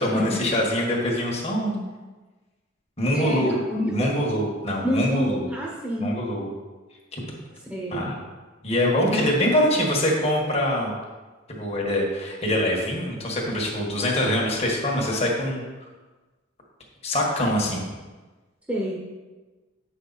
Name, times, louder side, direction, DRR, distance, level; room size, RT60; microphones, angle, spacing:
voice 1, 0.0-1.8 3.0-3.5 3.9-5.5 6.0-6.5 7.1-7.4 7.9-8.2 8.6-10.9 11.5-15.6 17.0-17.9, equal, 30° left, -2 dB, 1.5 m, -24 dB
voice 2, 3.1-4.1 4.8-6.1 7.7-8.1 9.0-9.2 9.5-9.7 18.7-19.0, equal, 10° right, -4 dB, 1.2 m, -28 dB
8.1 x 5.7 x 4.1 m, 1.3 s
head